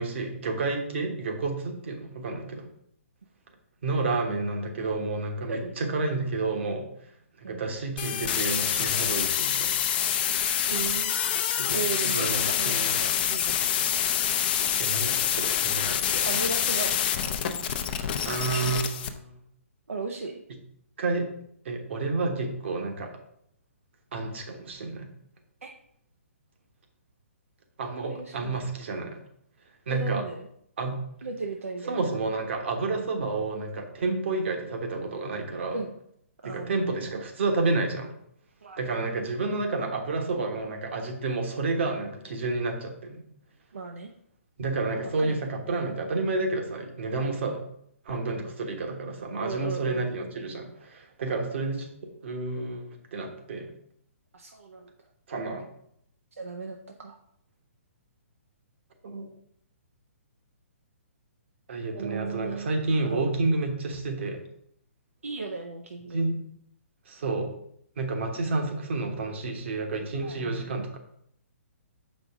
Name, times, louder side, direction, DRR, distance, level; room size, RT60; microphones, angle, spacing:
voice 1, 0.0-2.7 3.8-6.8 7.4-9.8 11.6-11.8 12.0-12.9 14.8-16.2 18.2-19.4 21.0-21.3 21.6-23.1 24.1-25.1 27.8-29.2 29.9-30.2 30.8-31.0 31.9-35.8 36.4-38.1 38.8-43.2 44.6-47.6 48.0-51.9 52.2-53.7 55.3-55.7 59.0-59.3 61.7-64.4 66.1-66.4 67.1-67.5 68.0-71.0, right 3 dB, 55° right, 4 dB, 1.4 m, -30 dB
sound 1, 8.0-19.1, left 9 dB, 40° left, 0.6 m, -26 dB
voice 2, 10.7-11.1 11.7-13.7 16.1-17.0 17.5-17.9 19.9-20.3 25.6-25.7 27.8-28.7 29.9-30.5 31.2-32.1 35.7-35.9 36.4-37.1 38.6-38.8 43.7-44.1 45.2-45.5 49.4-50.1 51.3-51.4 54.3-54.9 56.4-57.2 61.9-63.3 65.2-66.3 70.2-70.8, right 4 dB, 75° right, 2 dB, 0.7 m, -36 dB
6.9 x 5.2 x 3.6 m, 0.71 s
figure-of-eight pair, 125°, 7 cm